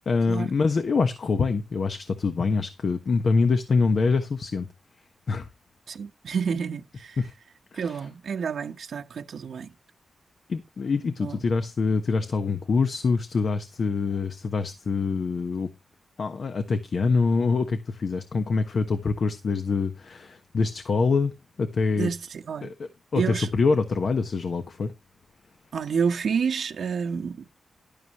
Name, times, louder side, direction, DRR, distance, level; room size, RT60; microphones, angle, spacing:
voice 1, 0.1-4.7 5.3-5.5 7.2-7.3 7.7-8.0 10.5-15.7 16.2-21.3 21.6-22.1 22.6-24.9, left 4 dB, 60° left, 1.2 m, -25 dB
voice 2, 5.9-7.2 7.7-9.7 11.2-11.4 21.9-22.7 23.1-23.5 25.7-27.4, right 6 dB, 75° right, 1.0 m, -29 dB
11.5 x 10.0 x 3.0 m
wide cardioid pair, 105°, 0 cm